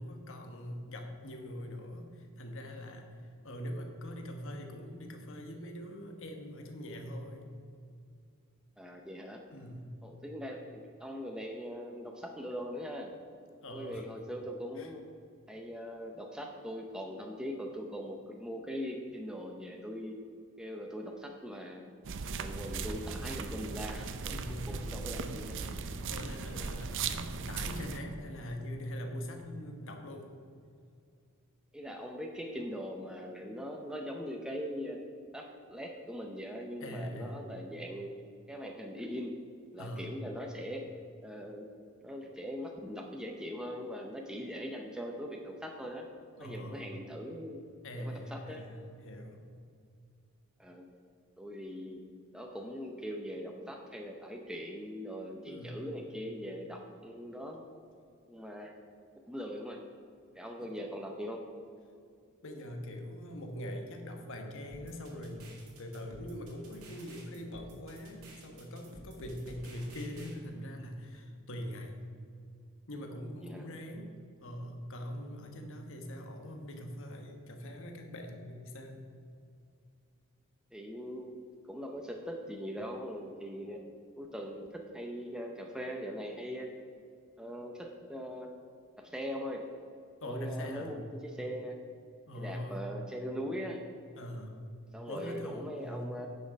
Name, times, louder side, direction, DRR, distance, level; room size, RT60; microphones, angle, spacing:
voice 1, 0.0-7.4 9.5-9.9 13.6-14.1 14.7-14.9 24.3-24.8 26.1-30.3 36.8-37.4 39.8-40.1 46.4-47.0 47.8-49.4 55.4-55.9 60.6-60.7 62.4-65.5 65.8-72.0 72.9-74.1 74.4-79.0 90.2-91.0 92.3-92.9 94.2-94.6 95.1-96.2, equal, 65° left, 4 dB, 1.2 m, -42 dB
voice 2, 8.8-9.4 10.0-13.1 13.7-15.0 15.5-20.2 20.6-21.9 22.4-24.4 24.7-25.6 31.7-35.0 35.3-38.1 38.5-39.4 39.7-40.8 41.2-41.7 42.0-46.1 46.4-47.6 48.0-48.6 50.6-50.9 51.4-52.0 52.3-57.6 58.3-58.7 59.3-59.8 60.4-61.4 73.4-73.6 80.7-81.4 81.7-83.8 84.2-86.7 87.4-88.5 89.0-89.7 90.2-91.8 92.3-93.9 94.9-96.3, equal, 5° right, 1 dB, 0.6 m, -41 dB
sound 1, 22.0-28.0, right 4 dB, 60° right, 0.5 m, -38 dB
sound 2, 64.7-70.3, right 1 dB, 85° right, 2.0 m, -52 dB
9.5 x 6.2 x 5.2 m, 2.4 s
head